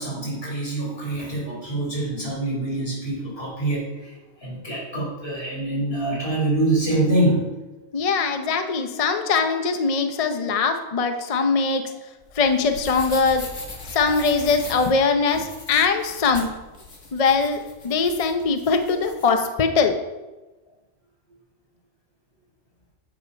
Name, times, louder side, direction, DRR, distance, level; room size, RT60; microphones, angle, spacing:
voice 1, 0.0-3.9 4.4-7.5, right 2 dB, 60° left, -4 dB, 4.2 m, -25 dB
voice 2, 7.9-11.8 12.3-13.4 13.9-16.5 17.1-20.0, left 4 dB, 35° left, 6 dB, 0.8 m, -21 dB
sound 1, 12.2-19.3, left 2 dB, 90° left, 1.9 m, -40 dB
8.5 x 8.4 x 5.3 m, 1.1 s
omnidirectional pair, 1.2 m